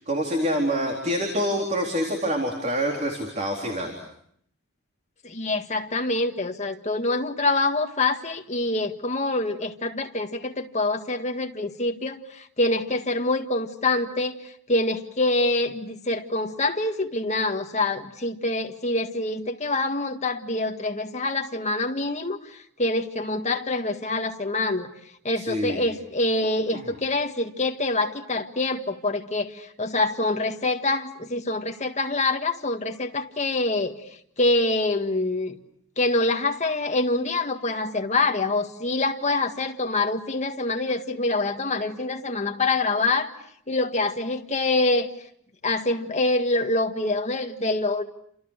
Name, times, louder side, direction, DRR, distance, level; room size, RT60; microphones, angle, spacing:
voice 1, 0.0-3.9 25.4-25.8 26.7-26.8, equal, 30° right, 1 dB, 4.0 m, -26 dB
voice 2, 5.2-24.9 25.2-34.0 34.4-35.6 36.0-43.3 43.7-45.1 45.6-48.0, left 2 dB, 30° left, 4 dB, 1.8 m, -25 dB
29.5 x 27.5 x 6.6 m, 0.68 s
head